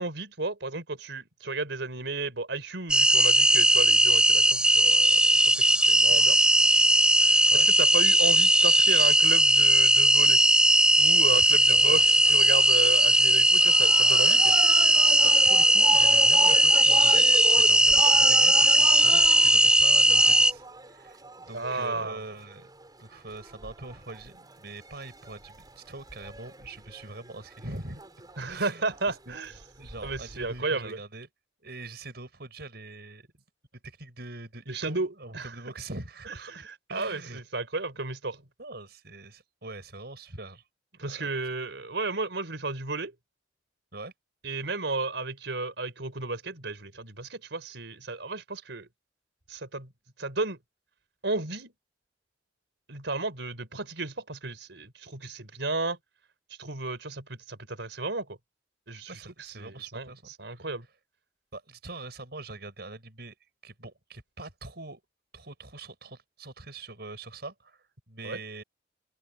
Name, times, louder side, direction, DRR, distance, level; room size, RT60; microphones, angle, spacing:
voice 1, 0.0-6.4 7.2-10.4 11.0-14.5 21.5-22.2 28.4-29.5 30.0-31.0 34.7-35.5 36.5-38.5 41.0-43.1 44.4-48.9 49.5-49.9 50.2-50.6 51.2-51.7 52.9-56.0 56.6-58.3 58.9-60.1 60.4-60.9 68.2-68.4, right 3 dB, 80° right, 4.0 m, -33 dB
sound 1, 2.9-20.5, right 1 dB, 5° right, 0.6 m, -19 dB
voice 2, 11.3-12.0 15.2-17.3 17.6-22.7 23.0-28.0 28.5-28.9 29.3-29.4 29.8-31.3 31.6-33.3 33.7-37.4 38.6-40.6 41.0-41.4 43.9-44.1 48.7-48.8 59.1-60.7 61.5-63.4 63.6-65.0 65.3-68.6, right 2 dB, 60° right, 7.0 m, -43 dB
sound 2, 11.7-30.6, right 3 dB, 20° right, 4.5 m, -39 dB
open air
head